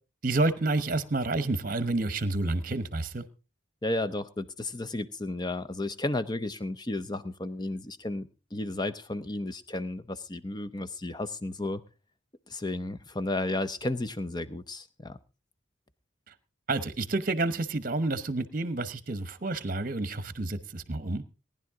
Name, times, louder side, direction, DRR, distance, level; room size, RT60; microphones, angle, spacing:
voice 1, 0.2-3.3 16.3-16.4 16.7-21.2, right 2 dB, 45° right, 13 dB, 1.0 m, -29 dB
voice 2, 3.8-8.2 8.5-11.8 12.5-15.2, left 2 dB, 20° left, 13 dB, 0.7 m, -33 dB
18.5 x 10.5 x 3.6 m, 0.31 s
head